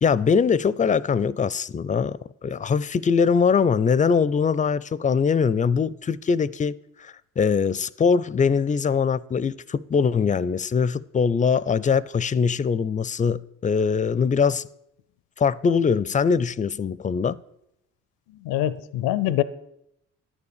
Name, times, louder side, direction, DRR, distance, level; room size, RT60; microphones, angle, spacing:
voice 1, 0.0-14.7 15.4-17.4, left 6 dB, 25° left, 0.4 m, -22 dB
voice 2, 18.3-19.4, left 13 dB, 85° left, 0.5 m, -24 dB
10.5 x 7.1 x 6.8 m
supercardioid pair, 60°, 33 cm